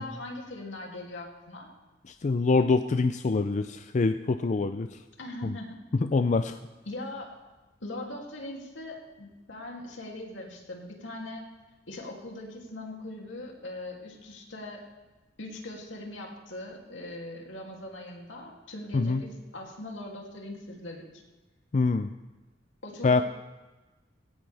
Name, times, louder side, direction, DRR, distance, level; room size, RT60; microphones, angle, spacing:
voice 1, 0.0-1.7 5.2-5.8 6.9-7.3 7.8-11.4 11.9-14.8 15.4-21.2 22.8-23.2, left 1 dB, 75° left, 0 dB, 2.8 m, -40 dB
voice 2, 2.2-4.9 5.4-5.5 6.0-6.6 18.9-19.2 21.7-22.1 23.0-23.2, left 3 dB, 40° left, 9 dB, 0.4 m, -25 dB
16.5 x 16.5 x 3.5 m, 1.2 s
head